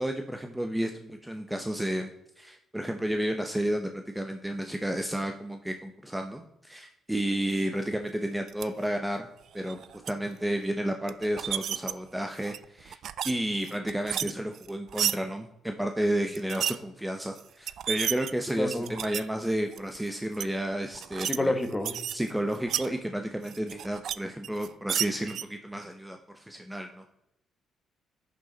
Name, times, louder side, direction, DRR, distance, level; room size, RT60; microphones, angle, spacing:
voice 1, 0.0-2.1 2.4-9.3 9.5-9.8 10.1-13.0 13.2-21.5 22.1-27.0, right 1 dB, 5° right, 5 dB, 0.8 m, -31 dB
sound 1, 8.5-8.6 9.5-10.1 11.1-11.9 12.4-13.3 13.6-15.2 16.3-16.8 17.4-17.5 17.7-19.2 19.7-20.0 20.3-20.4 20.9-21.4 21.6-22.9 23.4-24.1 24.4-25.4, right 9 dB, 70° right, 0.4 m, -32 dB
voice 2, 18.6-18.9 21.2-22.0, left 1 dB, 15° left, 8 dB, 1.3 m, -28 dB
11.0 x 6.5 x 4.0 m, 0.84 s
cardioid pair, 90°, 0 cm